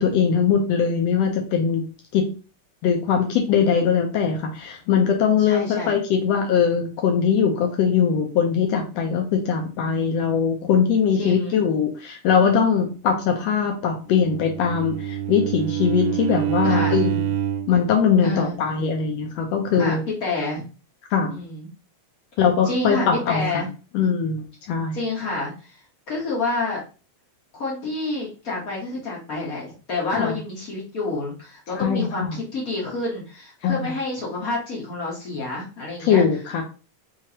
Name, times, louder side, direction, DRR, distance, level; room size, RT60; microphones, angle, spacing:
voice 1, 0.0-1.8 2.1-2.3 2.8-17.2 17.7-20.0 21.1-21.3 22.4-23.6 23.9-25.0 30.1-30.3 31.7-32.4 33.6-33.9 36.0-36.6, left 6 dB, 80° left, 3 dB, 1.5 m, -21 dB
voice 2, 5.4-5.9 11.2-11.6 16.6-17.0 18.2-18.5 19.7-20.6 21.3-21.7 22.6-23.7 24.9-25.8 26.1-26.8 27.5-36.2, left 2 dB, 60° left, -3 dB, 0.9 m, -28 dB
Bowed string instrument, 14.2-17.8, right 11 dB, 80° right, 1.9 m, -26 dB
6.1 x 2.8 x 2.9 m, 0.34 s
omnidirectional pair, 3.7 m